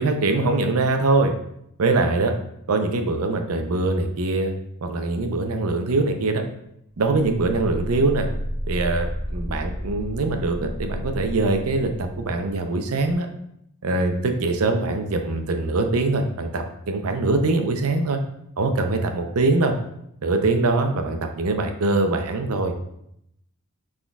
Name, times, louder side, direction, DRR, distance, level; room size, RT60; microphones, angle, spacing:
voice 1, 0.0-1.3 1.8-2.4 2.7-4.5 4.8-6.4 7.0-8.3 8.7-13.3 13.8-18.2 18.6-19.7 20.2-22.7, right 3 dB, 70° right, 6 dB, 0.6 m, -23 dB
sound 1, 7.0-12.5 13.0-13.1, equal, 10° right, 1.6 m, -32 dB
6.1 x 3.7 x 2.3 m, 0.75 s
head